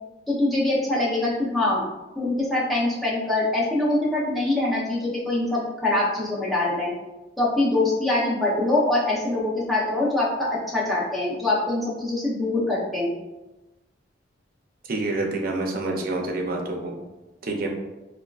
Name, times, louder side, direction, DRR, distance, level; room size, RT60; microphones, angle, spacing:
voice 1, 0.3-1.9 2.2-6.9 7.4-13.1, left 2 dB, ahead, -7 dB, 0.6 m, -24 dB
voice 2, 14.9-16.9 17.4-17.7, right 2 dB, 50° right, 1 dB, 0.5 m, -27 dB
3.5 x 2.3 x 2.3 m, 1.1 s
head